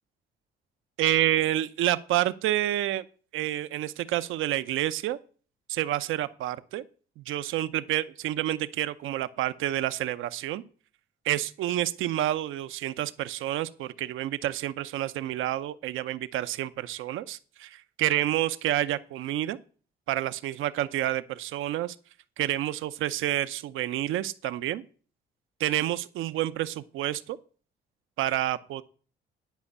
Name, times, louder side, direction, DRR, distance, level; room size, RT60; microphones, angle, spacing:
voice 1, 1.0-3.0 3.3-5.2 5.7-6.8 7.2-10.6 11.2-19.6 20.1-22.0 22.4-24.8 25.6-27.4 28.2-28.8, right 14 dB, 85° right, 0.7 m, -29 dB
10.5 x 5.3 x 8.4 m
cardioid pair, 90°, 20 cm